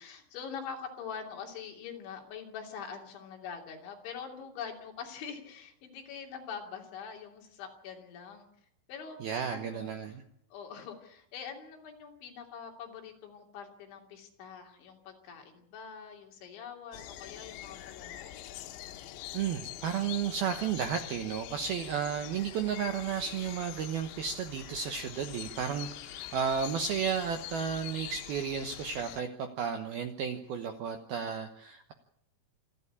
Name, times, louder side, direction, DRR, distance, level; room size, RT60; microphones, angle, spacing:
voice 1, 0.0-8.5 8.9-9.2 9.5-9.9 10.5-18.4, left 6 dB, 65° left, 2 dB, 5.1 m, -44 dB
voice 2, 9.2-10.2 19.3-29.3 29.6-31.9, right 7 dB, 75° right, 6 dB, 2.3 m, -33 dB
sound 1, 16.9-29.2, left 13 dB, 90° left, 3.7 m, -44 dB
27.0 x 11.5 x 8.6 m, 0.73 s
omnidirectional pair, 5.9 m